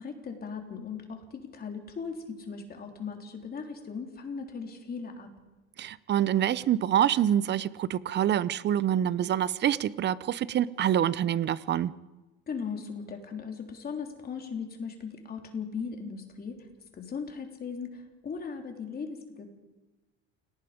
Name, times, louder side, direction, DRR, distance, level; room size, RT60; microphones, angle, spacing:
voice 1, 0.0-5.3 12.5-16.6 16.9-19.5, left 5 dB, 30° left, 4 dB, 3.4 m, -38 dB
voice 2, 5.8-11.9, right 10 dB, 35° right, 19 dB, 0.6 m, -26 dB
29.0 x 18.5 x 5.1 m, 1.1 s
cardioid pair, 140°, 31 cm